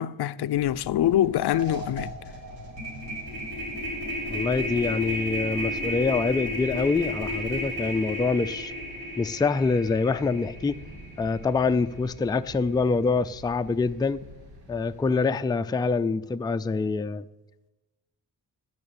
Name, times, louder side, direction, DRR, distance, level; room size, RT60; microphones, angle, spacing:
voice 1, 0.0-2.1, left 12 dB, 80° left, 0.5 m, -24 dB
sound 1, 0.5-15.1, equal, 85° right, 2.8 m, -47 dB
sound 2, 1.0-1.2 1.5-11.8, equal, 65° right, 6.0 m, -33 dB
voice 2, 4.3-8.7 9.2-10.8 11.2-14.2 14.7-17.3, left 4 dB, 10° left, 0.3 m, -25 dB
15.5 x 6.4 x 8.6 m
wide cardioid pair, 115°, 38 cm